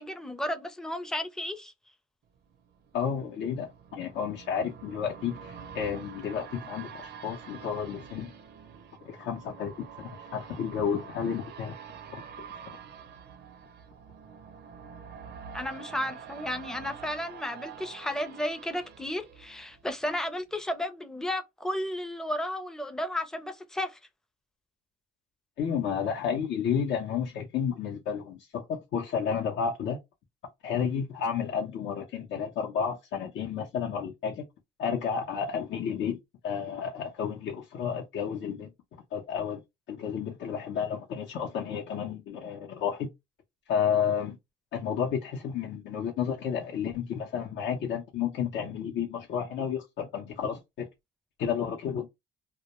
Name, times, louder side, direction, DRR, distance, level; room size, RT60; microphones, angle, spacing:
voice 1, 0.0-1.7 15.5-24.0, left 1 dB, 5° left, 0.4 m, -33 dB
sound 1, 2.4-20.2 20.6-20.7, right 7 dB, 55° right, 0.5 m, -47 dB
voice 2, 2.9-8.3 9.0-11.7 25.6-30.0 30.6-34.4 34.8-36.2 36.4-38.7 39.1-39.6 39.9-43.1 43.7-44.4 44.7-50.9 51.4-52.1, left 7 dB, 70° left, 0.6 m, -31 dB
2.2 x 2.1 x 2.8 m
cardioid pair, 90°, 20 cm